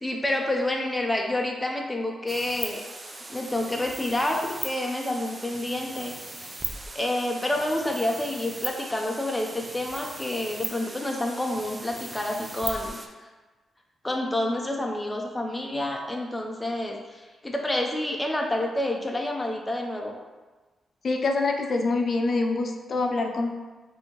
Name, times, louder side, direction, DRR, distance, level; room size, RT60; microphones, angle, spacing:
voice 1, 0.0-2.8 3.3-6.1 6.9-13.3 14.0-20.1, left 1 dB, 15° left, 1 dB, 0.6 m, -28 dB
sound 1, 2.3-13.1, right 2 dB, 30° right, 0.6 m, -38 dB
voice 2, 21.0-23.6, left 3 dB, 55° left, 3 dB, 0.6 m, -25 dB
5.2 x 2.8 x 3.0 m, 1.3 s
cardioid pair, 60°, 0 cm